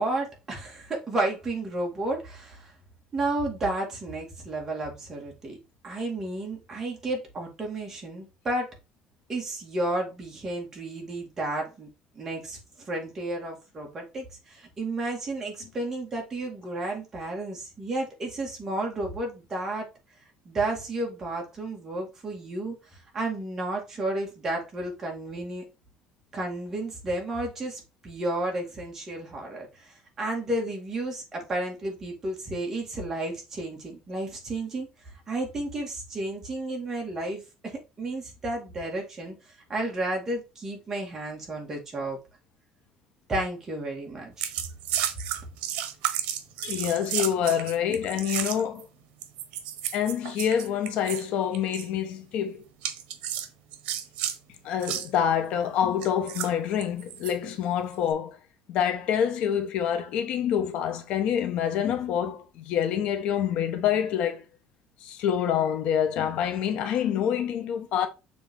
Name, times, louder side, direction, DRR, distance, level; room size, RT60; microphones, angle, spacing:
voice 1, 0.0-2.7 3.1-5.6 5.8-8.7 9.3-11.9 12.2-12.6 12.9-19.9 20.5-22.8 23.1-25.6 26.3-34.9 35.3-39.3 39.7-42.2 43.3-44.5, right 2 dB, 20° right, 2.2 m, -32 dB
sound 1, 44.4-48.8 49.2-51.3 51.5-51.9 52.8-54.4 54.8-55.1 56.0-57.3 57.9-58.1, right 11 dB, 80° right, 1.0 m, -32 dB
voice 2, 46.6-48.9 49.9-52.6 54.6-58.4 58.7-64.4 65.0-68.1, left 9 dB, 60° left, 1.0 m, -26 dB
7.0 x 3.9 x 3.7 m
cardioid pair, 175°, 2 cm